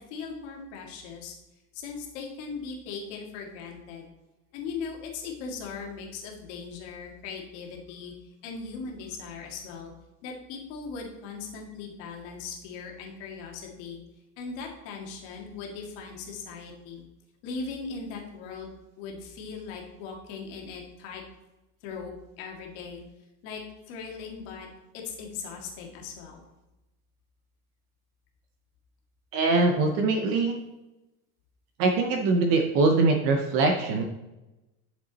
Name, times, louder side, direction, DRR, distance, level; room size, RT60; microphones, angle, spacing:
voice 1, 0.0-1.3 1.7-4.1 4.5-8.1 8.4-9.9 10.2-14.0 14.4-17.0 17.4-21.2 21.8-23.0 23.4-24.7 24.9-26.4, left 5 dB, 45° left, 0 dB, 1.9 m, -39 dB
voice 2, 29.3-30.6 31.8-34.0, right 3 dB, 30° right, 4 dB, 0.6 m, -23 dB
9.6 x 6.8 x 4.0 m, 0.99 s
supercardioid pair, 175°, 49 cm